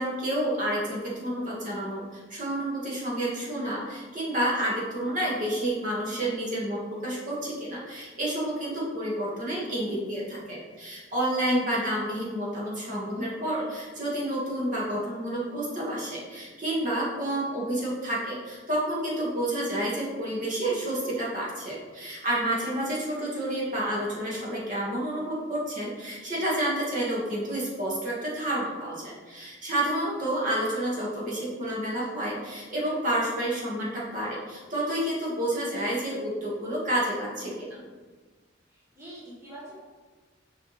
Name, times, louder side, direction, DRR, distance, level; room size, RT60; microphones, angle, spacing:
voice 1, 0.0-37.8, right 1 dB, 45° right, -5 dB, 1.7 m, -29 dB
voice 2, 39.0-39.8, right 1 dB, 15° right, -8 dB, 1.1 m, -44 dB
6.5 x 5.0 x 3.3 m, 1.4 s
head